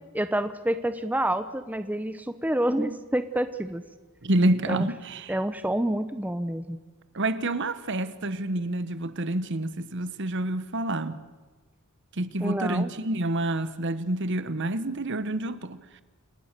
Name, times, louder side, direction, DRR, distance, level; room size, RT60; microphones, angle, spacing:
voice 1, 0.1-3.8 4.7-4.9 5.3-6.8 12.4-12.9, right 1 dB, 5° right, 0.8 m, -28 dB
voice 2, 4.2-5.3 7.1-11.2 12.2-15.8, right 1 dB, 55° right, 1.2 m, -28 dB
29.0 x 18.5 x 6.8 m
head